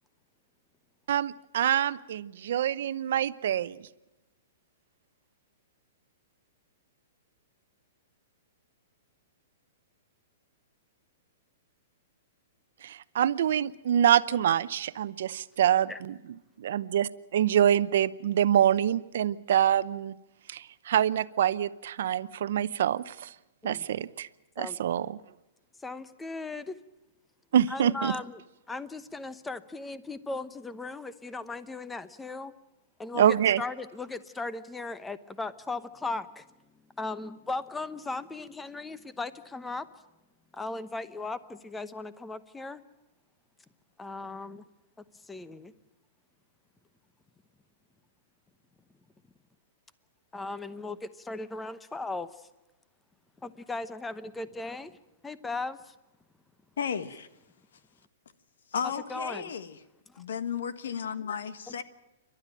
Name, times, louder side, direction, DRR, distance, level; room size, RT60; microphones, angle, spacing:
voice 1, 1.1-3.8 12.8-16.1 16.6-20.1 20.5-23.3 23.6-24.3 24.6-25.2 27.5-28.2 33.1-33.6, right 10 dB, 65° right, 0.8 m, -25 dB
voice 2, 25.8-26.8 27.7-28.4 28.7-32.5 33.0-33.2 33.6-36.5 37.0-39.9 40.5-42.8 44.0-44.6 45.2-45.7 50.3-52.3 53.4-55.0 55.2-55.9 58.8-59.5 60.1-60.2 61.7-61.8, left 3 dB, 10° left, 0.9 m, -37 dB
voice 3, 56.8-57.3 58.7-59.8 60.2-61.8, left 7 dB, 80° left, 1.5 m, -34 dB
29.0 x 12.5 x 9.0 m
hypercardioid pair, 140°, 0 cm